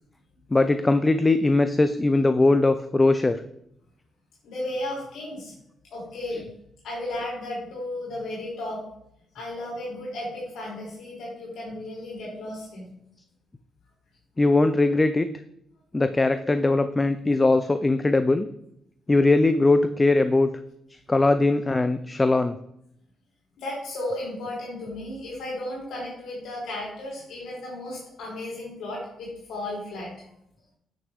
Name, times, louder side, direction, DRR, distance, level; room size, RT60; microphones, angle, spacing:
voice 1, 0.5-3.4 14.4-15.3 15.9-18.5 19.1-20.5 21.1-22.6, left 2 dB, 20° left, 10 dB, 0.4 m, -20 dB
voice 2, 4.4-5.5 5.9-6.4 6.8-8.8 9.3-12.9 23.6-30.1, left 1 dB, 80° left, -4 dB, 3.5 m, -34 dB
9.1 x 6.4 x 3.5 m, 0.75 s
cardioid pair, 115°, 0 cm